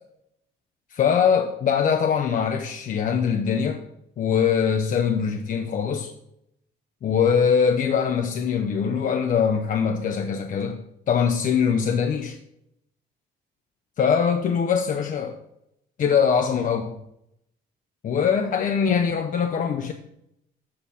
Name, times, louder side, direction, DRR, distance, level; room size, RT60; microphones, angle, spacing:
voice 1, 0.9-3.8 4.2-6.1 7.0-12.4 14.0-15.4 16.0-17.0 18.0-19.9, left 7 dB, 40° left, 5 dB, 0.5 m, -22 dB
6.5 x 5.6 x 5.4 m, 0.81 s
cardioid pair, 120°, 20 cm